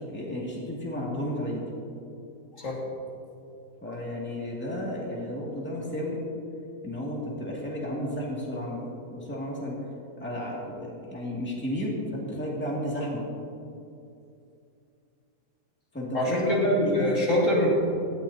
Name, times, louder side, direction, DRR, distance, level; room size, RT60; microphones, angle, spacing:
voice 1, 0.1-1.6 3.8-6.2 6.8-8.8 9.1-9.8 10.2-13.2 15.9-16.7 16.9-17.1, equal, 5° left, -4 dB, 2.2 m, -33 dB
voice 2, 16.1-17.7, left 1 dB, 55° left, -4 dB, 2.6 m, -24 dB
17.5 x 13.5 x 2.8 m, 2.6 s
omnidirectional pair, 1.6 m